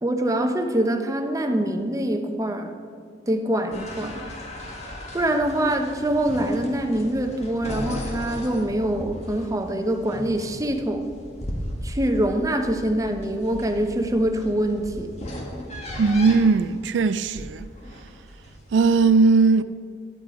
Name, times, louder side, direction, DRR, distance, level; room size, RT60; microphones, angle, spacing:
voice 1, 0.0-2.8 3.3-4.2 5.1-11.1 11.8-15.1, right 1 dB, 20° right, 0.8 m, -24 dB
sound 1, 3.7-19.0, left 1 dB, 40° left, 1.6 m, -37 dB
voice 2, 16.0-17.7 18.7-19.6, right 4 dB, 75° right, 0.3 m, -18 dB
11.5 x 10.0 x 4.8 m
head